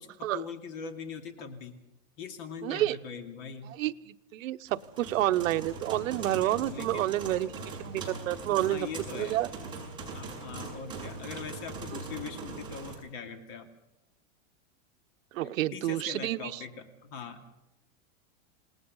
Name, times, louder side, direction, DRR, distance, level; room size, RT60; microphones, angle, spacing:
voice 1, 0.0-1.8 2.2-3.7 6.6-7.1 8.5-9.4 10.1-13.7 15.4-17.5, left 6 dB, 40° left, 6 dB, 2.5 m, -41 dB
voice 2, 2.6-3.0 3.8-8.9 9.2-9.5 15.3-16.5, right 14 dB, 75° right, 12 dB, 0.9 m, -29 dB
sound 1, 4.7-12.9, right 3 dB, 10° right, 6.6 m, -41 dB
27.5 x 19.0 x 5.5 m, 0.91 s
supercardioid pair, 170°, 39 cm